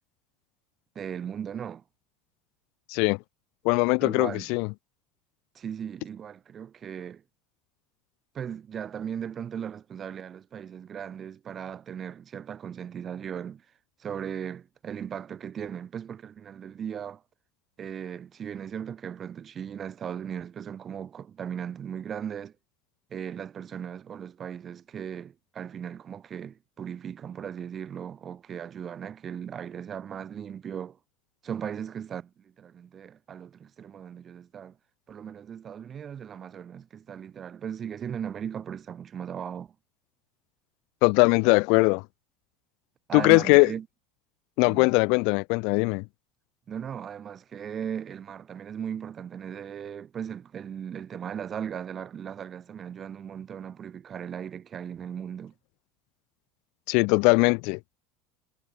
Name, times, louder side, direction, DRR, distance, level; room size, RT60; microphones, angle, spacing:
voice 1, 1.0-1.8 4.0-4.5 5.5-7.2 8.3-13.7 14.0-17.2 17.8-22.6 23.1-31.0 31.4-34.8 35.1-39.8 43.1-43.9 44.6-44.9 46.7-55.5, right 8 dB, 35° right, 3.9 m, -37 dB
voice 2, 3.6-4.7 41.0-42.0 43.1-43.7 44.6-46.0 56.9-57.8, left 33 dB, 60° left, 0.6 m, -21 dB
figure-of-eight pair, 75°, 0 cm